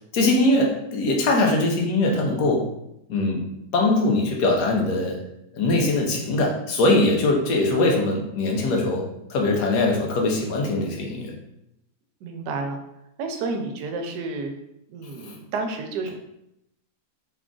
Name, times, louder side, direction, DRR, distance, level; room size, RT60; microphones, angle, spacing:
voice 1, 0.1-2.6 3.1-3.4 3.7-5.2 5.6-9.0 9.3-11.3, left 2 dB, 80° left, 0 dB, 1.3 m, -21 dB
voice 2, 12.2-12.8 13.2-14.5 14.9-16.1, right 3 dB, 85° right, 4 dB, 1.2 m, -30 dB
3.7 x 2.4 x 3.7 m, 0.82 s
omnidirectional pair, 1.7 m